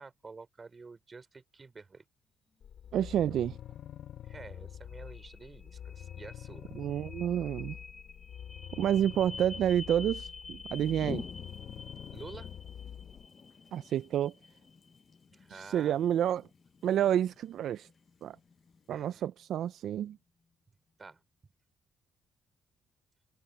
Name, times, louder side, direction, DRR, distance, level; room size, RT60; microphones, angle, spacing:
voice 1, 0.0-2.0 4.2-6.7 12.1-12.5 15.3-16.0 18.9-19.3 21.0-21.2, right 4 dB, 30° right, 4.1 m, -49 dB
sound 1, 2.5-20.5, left 3 dB, 30° left, 2.2 m, -51 dB
sound 2, 2.6-13.3, left 10 dB, 65° left, 1.0 m, -46 dB
voice 2, 2.9-3.6 6.7-7.8 8.8-11.3 13.7-14.3 15.5-16.5 16.8-17.9 18.2-18.4 18.9-20.2, right 10 dB, 75° right, 0.4 m, -29 dB
sound 3, 10.7-19.1, left 6 dB, 45° left, 0.8 m, -49 dB
cardioid pair, 90°, 0 cm